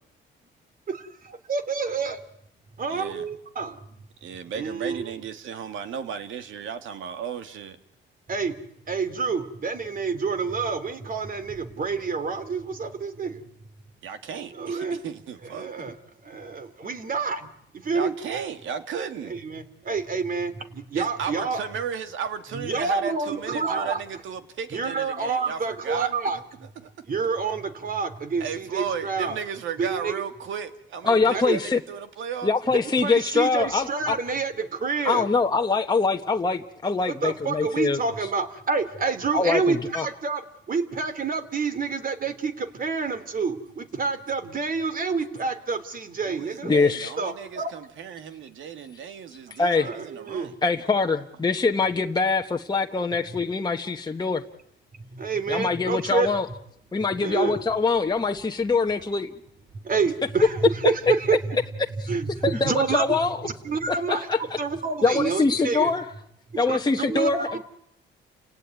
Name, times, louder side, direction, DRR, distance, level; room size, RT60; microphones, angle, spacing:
voice 1, 1.5-2.2 2.8-3.8 4.5-5.0 8.3-8.5 8.9-13.4 14.5-15.0 15.5-15.9 16.2-17.4 17.7-18.1 19.2-21.6 22.5-24.0 24.7-26.4 27.1-29.4 29.8-30.1 31.3-31.6 32.7-35.2 37.2-46.7 47.2-47.7 49.7-50.5 55.1-56.3 57.2-57.6 59.8-61.6 62.1-65.9 66.5-67.6, right 4 dB, 45° right, 3.1 m, -28 dB
voice 2, 2.9-3.3 4.2-7.8 14.0-15.9 16.3-16.4 17.9-19.4 20.9-26.1 26.8-26.9 28.4-32.5 46.3-50.6, right 7 dB, 75° right, 2.3 m, -34 dB
voice 3, 31.0-31.8 32.4-34.2 35.0-38.0 39.3-40.1 46.6-47.1 49.6-49.9 50.6-54.4 55.5-56.5 56.9-59.3 62.0-62.1 62.4-63.4 63.9-64.4 65.0-66.0 66.6-67.6, left 4 dB, 20° left, 1.3 m, -24 dB
30.0 x 17.5 x 9.5 m
cardioid pair, 90°, 20 cm